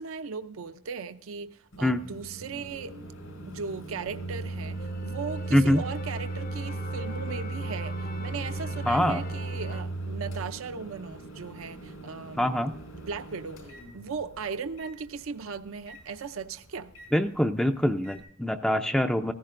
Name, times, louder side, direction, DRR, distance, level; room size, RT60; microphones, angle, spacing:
voice 1, 0.0-3.0 3.4-12.5 13.0-16.9, right 5 dB, 75° right, 0.6 m, -37 dB
Microwave oven, 1.7-18.2, right 2 dB, 80° left, 5.0 m, -38 dB
sound 1, 4.3-9.8, left 1 dB, 45° left, 0.7 m, -43 dB
voice 2, 5.5-5.8 8.9-9.2 12.4-12.7 17.1-19.3, left 1 dB, 5° left, 0.4 m, -24 dB
15.5 x 14.5 x 2.5 m
head